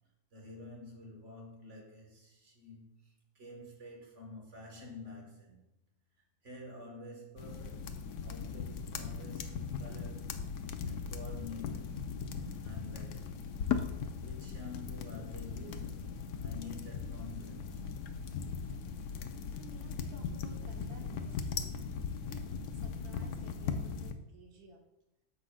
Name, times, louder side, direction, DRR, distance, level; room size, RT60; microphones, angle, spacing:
voice 1, 0.3-5.6 6.4-7.9 8.2-9.5 9.8-10.4 10.8-12.0 12.6-13.4 13.9-16.1 16.4-17.8, left 2 dB, 45° right, 2.0 m, -49 dB
sound 1, 7.4-24.1, left 6 dB, 85° left, 1.2 m, -39 dB
voice 2, 19.5-21.9 22.3-22.4 22.7-24.8, right 4 dB, 70° right, 1.8 m, -55 dB
9.9 x 7.4 x 2.4 m
omnidirectional pair, 1.7 m